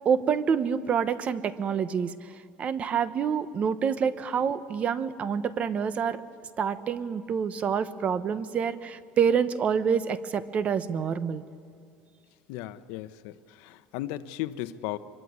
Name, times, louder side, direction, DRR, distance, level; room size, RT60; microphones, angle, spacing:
voice 1, 0.0-6.2 6.6-11.4, right 7 dB, 30° right, 13 dB, 1.0 m, -27 dB
voice 2, 12.5-15.0, left 14 dB, 75° left, 12 dB, 0.9 m, -36 dB
24.5 x 23.0 x 9.5 m, 2.2 s
cardioid pair, 150°, 4 cm